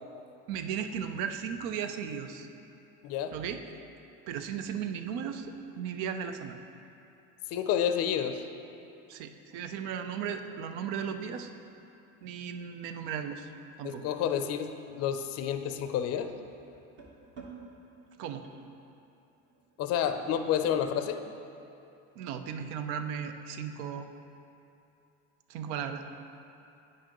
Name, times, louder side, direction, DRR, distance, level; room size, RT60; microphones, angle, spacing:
voice 1, 0.5-2.5 3.3-3.6 4.3-6.6 9.1-11.5 12.2-13.5 13.8-14.1 18.2-18.5 22.2-24.1 25.5-26.0, right 7 dB, 70° right, 8 dB, 0.6 m, -36 dB
voice 2, 3.0-3.3 7.5-8.4 13.8-16.3 19.8-21.2, left 9 dB, 50° left, 8 dB, 0.5 m, -30 dB
sound 1, 11.5-20.9, right 5 dB, 35° right, 1.3 m, -55 dB
9.1 x 4.9 x 3.0 m, 2.7 s
supercardioid pair, 95°, 33 cm